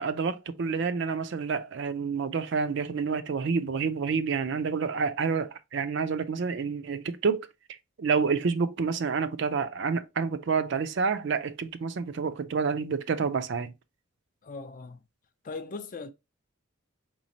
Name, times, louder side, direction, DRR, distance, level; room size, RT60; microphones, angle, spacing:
voice 1, 0.0-7.5 8.0-13.7, right 5 dB, 60° right, 0.4 m, -28 dB
voice 2, 14.4-15.0 15.4-16.1, left 3 dB, 40° left, 0.4 m, -39 dB
4.9 x 3.0 x 2.7 m
head